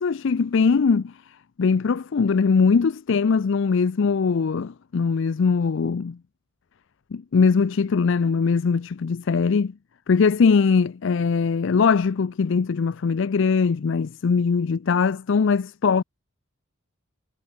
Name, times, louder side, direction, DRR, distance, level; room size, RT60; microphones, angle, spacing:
voice 1, 0.0-1.1 1.6-6.2 7.1-9.7 10.1-16.0, left 5 dB, 65° left, 0.5 m, -21 dB
head